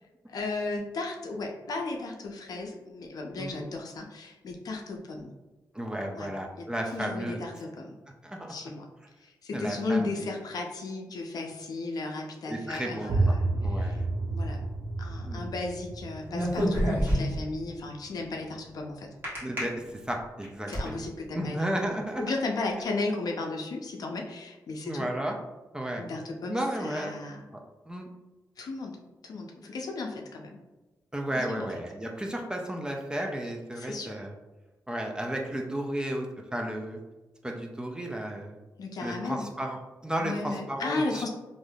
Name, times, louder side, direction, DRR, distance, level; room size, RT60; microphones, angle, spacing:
voice 1, 0.3-5.3 6.1-6.3 6.6-7.9 8.5-8.9 9.2-13.5 13.8-14.0 14.3-14.6 15.0-19.1 20.7-21.7 22.2-25.1 26.0-27.4 28.6-29.0 29.2-30.6 31.3-31.7 33.8-34.1 38.8-39.5 40.2-41.3, left 3 dB, 65° left, 1 dB, 0.5 m, -35 dB
voice 2, 5.7-7.4 8.2-8.5 9.5-10.2 12.5-13.4 13.6-14.0 15.2-15.4 19.4-21.0 21.3-22.2 24.8-25.3 25.7-26.0 26.5-27.1 27.5-27.6 27.9-28.1 31.1-34.3 34.9-37.0 37.4-38.6 39.0-39.8 40.0-41.3, right 1 dB, 10° right, 1 dB, 0.4 m, -33 dB
sound 1, 13.1-18.7, right 2 dB, 80° right, 0.4 m, -31 dB
sound 2, 16.3-17.5 19.2-19.6 20.2-20.9, equal, 30° right, 1.3 m, -27 dB
3.3 x 2.5 x 2.3 m, 1.1 s
wide cardioid pair, 125°, 7 cm